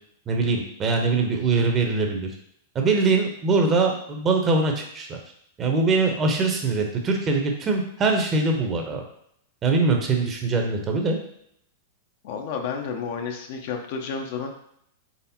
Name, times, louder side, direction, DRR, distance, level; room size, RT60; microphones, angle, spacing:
voice 1, 0.3-2.3 2.7-5.2 5.6-9.0 9.6-11.2, right 3 dB, 25° right, 2 dB, 0.8 m, -22 dB
voice 2, 12.2-14.5, left 6 dB, 55° left, 4 dB, 0.6 m, -31 dB
4.2 x 3.4 x 2.8 m, 0.72 s
figure-of-eight pair, 95°, 0 cm